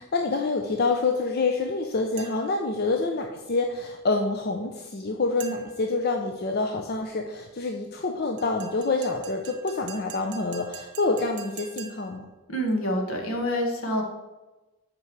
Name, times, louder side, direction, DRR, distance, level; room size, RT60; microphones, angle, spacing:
voice 1, 0.0-12.2, left 3 dB, 45° left, 3 dB, 0.6 m, -27 dB
sound 1, 2.2-2.6 5.4-5.9 8.4-12.2, right 8 dB, 55° right, 1.1 m, -45 dB
voice 2, 12.5-14.0, equal, 70° left, 2 dB, 1.6 m, -27 dB
8.2 x 5.3 x 4.6 m, 1.1 s
head